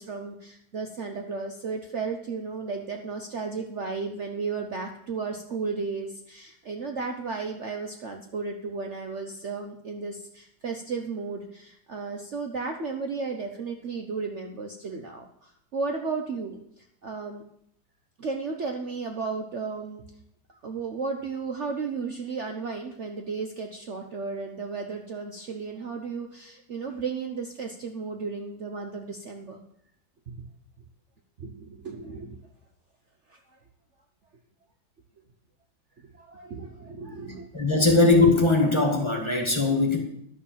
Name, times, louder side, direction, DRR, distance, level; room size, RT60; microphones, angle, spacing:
voice 1, 0.0-17.4 18.2-20.0 20.5-29.6 30.3-30.5 31.4-32.4 33.3-33.4 36.0-37.5, right 4 dB, 50° right, 4 dB, 1.0 m, -34 dB
voice 2, 37.5-40.0, left 3 dB, 15° left, 2 dB, 1.8 m, -20 dB
11.0 x 6.8 x 7.3 m, 0.72 s
omnidirectional pair, 1.8 m